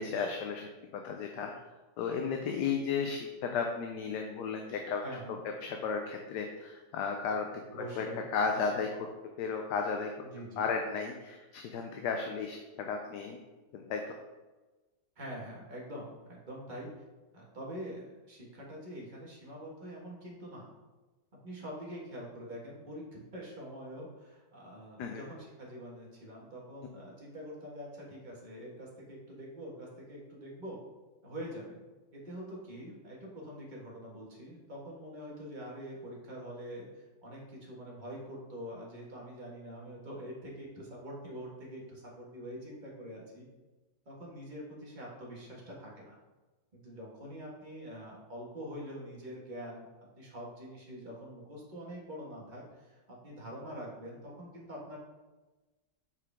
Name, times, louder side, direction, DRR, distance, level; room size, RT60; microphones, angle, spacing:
voice 1, 0.0-1.5 2.0-5.0 5.6-7.5 7.7-8.1 8.3-9.1 9.4-10.1 10.6-13.4 13.7-14.2 25.0-25.2, left 5 dB, 75° left, 3 dB, 1.2 m, -34 dB
voice 2, 5.0-5.4 7.7-8.3 10.2-10.6 15.2-16.9 17.3-20.7 21.4-30.8 31.2-31.8 32.1-43.5 44.0-46.2 46.7-49.9 50.2-55.0, equal, 30° right, -3 dB, 1.5 m, -45 dB
6.9 x 4.8 x 3.5 m, 1.2 s
omnidirectional pair, 1.8 m